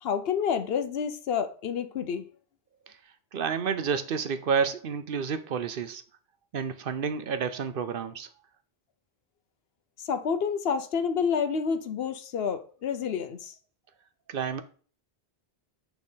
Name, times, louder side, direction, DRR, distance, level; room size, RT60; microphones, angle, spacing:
voice 1, 0.0-2.3 10.0-13.5, left 6 dB, 70° left, 0.9 m, -29 dB
voice 2, 3.3-6.0 6.5-8.3 14.3-14.6, right 6 dB, 65° right, 0.8 m, -30 dB
6.5 x 3.4 x 5.4 m
omnidirectional pair, 1.1 m